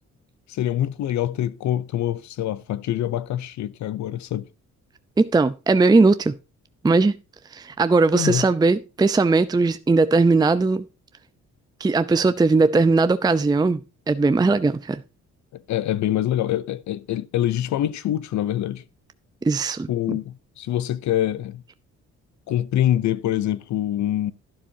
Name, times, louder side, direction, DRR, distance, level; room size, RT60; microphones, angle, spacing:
voice 1, 0.5-4.5 8.1-8.5 15.5-18.8 19.9-21.6 22.5-24.3, left 12 dB, 70° left, 0.6 m, -25 dB
voice 2, 5.2-6.3 6.8-7.1 7.5-10.8 11.8-13.8 14.1-15.0 19.4-19.9, right 3 dB, 15° right, 0.5 m, -19 dB
11.5 x 10.0 x 2.7 m
cardioid pair, 90°, 30 cm